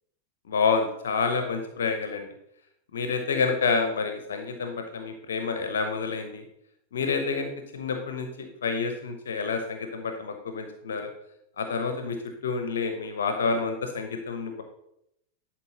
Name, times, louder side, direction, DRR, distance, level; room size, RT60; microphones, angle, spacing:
voice 1, 0.5-2.3 2.9-6.4 6.9-11.1 11.6-12.2 12.4-14.6, left 5 dB, 65° left, 6 dB, 0.9 m, -28 dB
11.0 x 4.5 x 4.2 m, 0.78 s
figure-of-eight pair, 90°, 0 cm